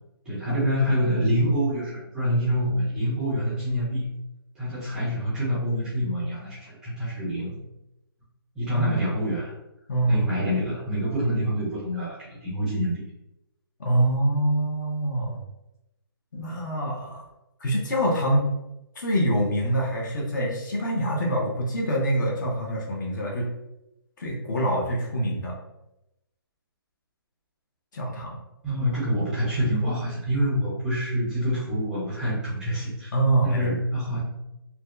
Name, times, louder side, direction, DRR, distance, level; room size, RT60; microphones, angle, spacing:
voice 1, 0.3-4.0 4.6-7.5 8.6-9.5 10.1-12.9 28.6-33.1 33.4-34.2, equal, 5° right, -10 dB, 0.4 m, -26 dB
voice 2, 8.7-9.0 9.9-10.3 13.8-15.4 16.3-17.2 17.6-18.6 19.0-23.5 24.2-25.6 27.9-28.4 33.1-33.7, right 1 dB, 50° left, -2 dB, 0.7 m, -25 dB
2.6 x 2.2 x 2.3 m, 0.91 s
hypercardioid pair, 165°, 13 cm